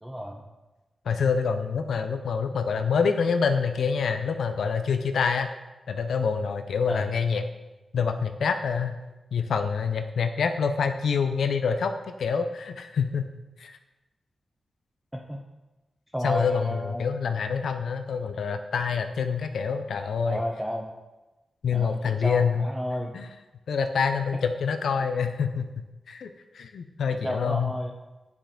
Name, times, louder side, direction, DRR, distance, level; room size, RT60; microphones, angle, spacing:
voice 1, 0.0-0.4 6.9-7.0 15.1-15.4 16.1-17.0 20.3-20.9 21.7-23.1 27.2-27.9, equal, 10° right, -2 dB, 0.8 m, -32 dB
voice 2, 1.1-5.5 5.9-7.4 7.9-9.0 9.3-11.9 12.2-13.3 13.6-13.7 16.2-20.4 21.6-22.7 23.1-23.3 23.7-26.3 26.5-27.7, left 6 dB, 80° left, 8 dB, 0.4 m, -26 dB
9.8 x 3.4 x 3.7 m, 1.1 s
cardioid pair, 45°, 0 cm